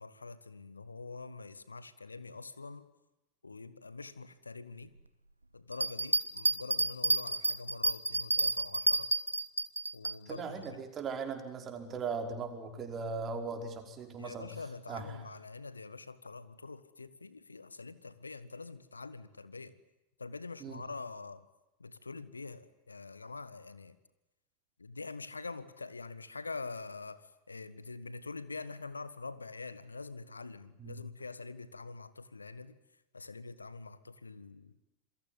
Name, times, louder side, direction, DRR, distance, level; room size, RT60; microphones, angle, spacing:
voice 1, 0.0-2.9 3.4-4.9 5.5-9.1 9.9-10.8 14.2-19.8 20.2-21.4 21.8-23.9 24.8-27.2 27.5-32.8 33.1-34.7, left 3 dB, 80° left, 1.5 m, -45 dB
sound 1, 5.7-10.1, right 2 dB, 85° right, 1.1 m, -30 dB
voice 2, 10.3-14.5 14.9-15.2 20.6-20.8 30.8-31.0, right 5 dB, 25° right, 5.1 m, -39 dB
28.0 x 22.5 x 9.5 m
figure-of-eight pair, 90°, 0 cm